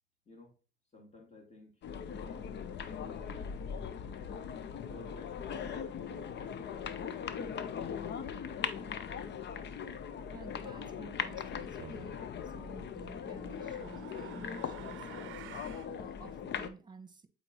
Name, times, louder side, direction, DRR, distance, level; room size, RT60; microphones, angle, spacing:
voice 1, 0.9-3.5 4.0-4.4 4.8-7.0 7.3-9.2, left 2 dB, 35° left, 2.4 m, -55 dB
sound 1, 1.8-16.7, left 7 dB, 60° left, 0.7 m, -40 dB
voice 2, 10.3-17.3, right 4 dB, 20° right, 1.1 m, -53 dB
sound 2, 11.8-12.2 13.2-15.9, right 12 dB, 80° right, 0.5 m, -50 dB
7.9 x 4.2 x 3.0 m
cardioid pair, 90°, 20 cm